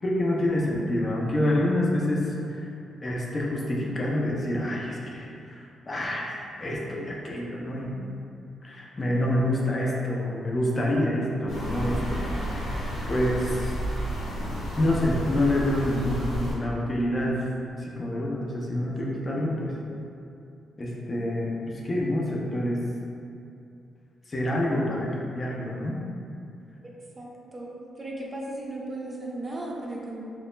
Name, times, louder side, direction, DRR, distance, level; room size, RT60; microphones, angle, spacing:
voice 1, 0.0-2.6 3.0-6.3 6.6-8.1 8.6-12.2 12.8-13.7 14.8-17.5 17.7-19.7 20.8-22.8 24.3-26.0, left 1 dB, 35° left, -3 dB, 0.5 m, -27 dB
sound 1, 11.5-16.5, equal, 85° left, 0.8 m, -31 dB
voice 2, 26.8-30.2, right 1 dB, 30° right, -3 dB, 0.5 m, -36 dB
2.2 x 2.1 x 3.0 m, 2.6 s
cardioid pair, 75°, 0 cm